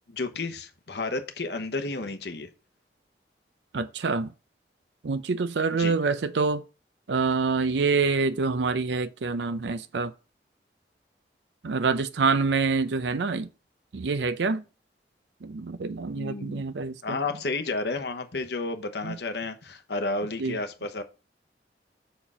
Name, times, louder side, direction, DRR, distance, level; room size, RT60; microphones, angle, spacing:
voice 1, 0.1-2.5 5.8-5.9 16.1-16.6 17.0-21.0, left 3 dB, 75° left, 1.0 m, -31 dB
voice 2, 3.7-4.3 5.0-6.6 7.1-10.1 11.6-13.5 13.9-14.6 15.4-17.2 19.0-19.2 20.4-20.6, right 4 dB, 90° right, 0.5 m, -26 dB
7.1 x 4.4 x 4.9 m
head